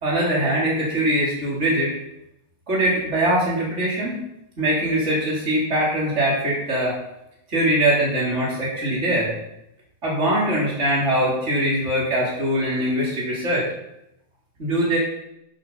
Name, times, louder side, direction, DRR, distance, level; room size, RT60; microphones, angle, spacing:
voice 1, 0.0-2.0 2.7-4.2 4.6-7.0 7.5-9.4 10.0-13.7 14.6-15.0, right 1 dB, 45° right, -5 dB, 3.7 m, -22 dB
11.0 x 9.1 x 5.5 m, 0.84 s
omnidirectional pair, 1.7 m